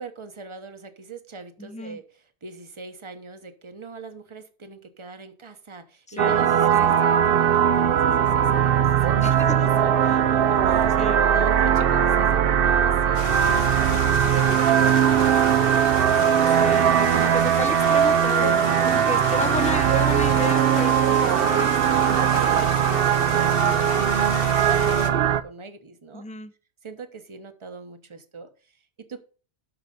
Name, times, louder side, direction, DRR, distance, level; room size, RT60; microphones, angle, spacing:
voice 1, 0.0-2.0 2.4-10.9 11.3-16.7 17.3-17.4 18.4-18.6 18.9-19.1 21.9-24.0 24.3-26.3 26.8-29.2, right 4 dB, 30° right, 1.0 m, -39 dB
voice 2, 1.6-2.0 6.1-6.9 9.2-9.6 11.0-11.2 16.6-21.2 21.5-22.5 26.1-26.5, left 3 dB, 10° left, 0.4 m, -33 dB
sound 1, 6.2-25.4, right 9 dB, 60° right, 0.7 m, -20 dB
sound 2, 13.1-25.1, left 7 dB, 70° left, 1.2 m, -34 dB
12.0 x 4.8 x 5.3 m
omnidirectional pair, 1.1 m